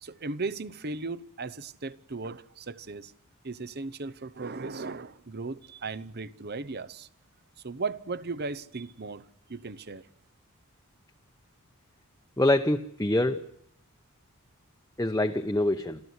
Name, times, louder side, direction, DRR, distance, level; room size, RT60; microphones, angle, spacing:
voice 1, 0.0-3.1 3.4-7.1 7.6-10.0, right 3 dB, 45° right, 0.9 m, -36 dB
voice 2, 12.4-13.4 15.0-16.0, left 1 dB, 15° left, 0.9 m, -25 dB
27.5 x 14.5 x 9.6 m
head